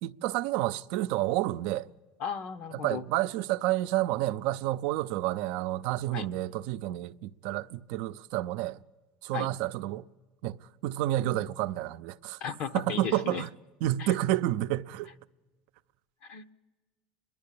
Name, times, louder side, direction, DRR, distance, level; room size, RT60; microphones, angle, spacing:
voice 1, 0.0-1.9 2.7-8.8 9.2-10.0 10.4-12.4 12.7-13.5 13.8-15.1, right 15 dB, 70° right, 0.5 m, -30 dB
voice 2, 2.2-3.0 6.1-6.3 9.3-9.5 12.4-13.4 14.0-14.1 16.2-16.5, left 7 dB, 55° left, 0.9 m, -35 dB
30.0 x 11.0 x 8.5 m
supercardioid pair, 130°, 3 cm